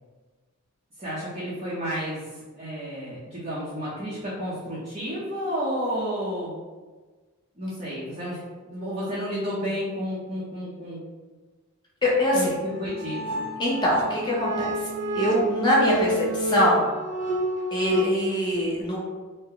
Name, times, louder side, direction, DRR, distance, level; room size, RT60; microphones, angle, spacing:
voice 1, 1.0-6.6 7.6-8.4 8.7-11.0 12.3-13.5, equal, 30° right, -9 dB, 0.6 m, -31 dB
voice 2, 12.0-12.5 13.6-14.7 15.1-16.8 17.7-19.0, left 1 dB, 20° left, -5 dB, 0.7 m, -23 dB
sound 1, 12.7-18.0, right 1 dB, 85° right, 0.7 m, -29 dB
2.7 x 2.1 x 3.8 m, 1.3 s
head